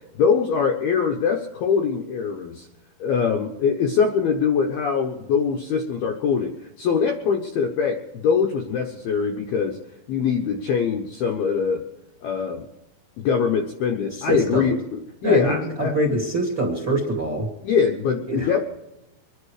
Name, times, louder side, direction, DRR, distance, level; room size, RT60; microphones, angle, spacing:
voice 1, 0.2-2.7 3.0-9.8 10.1-11.8 12.2-12.7 13.2-15.9 16.7-16.8 17.6-18.6, left 6 dB, 75° left, 3 dB, 2.3 m, -23 dB
voice 2, 14.1-14.7 15.2-17.5 18.3-18.5, right 1 dB, 35° right, 0 dB, 2.1 m, -24 dB
25.5 x 10.5 x 4.9 m, 0.93 s
omnidirectional pair, 5.9 m